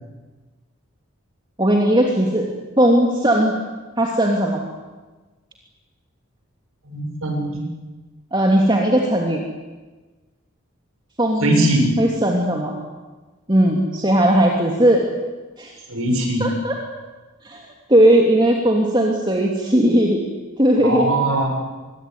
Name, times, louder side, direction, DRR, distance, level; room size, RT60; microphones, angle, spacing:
voice 1, 1.6-2.5 2.8-3.5 4.0-4.6 8.3-9.4 11.2-11.7 12.0-12.8 13.5-15.0 15.6-15.7 16.4-16.7 17.4-20.2 20.6-21.1, right 1 dB, 20° right, 0 dB, 2.8 m, -17 dB
voice 2, 6.8-7.6 11.4-11.9 15.9-16.5 20.8-21.5, right 1 dB, 90° right, 3 dB, 7.0 m, -20 dB
26.0 x 23.0 x 9.5 m, 1.3 s
head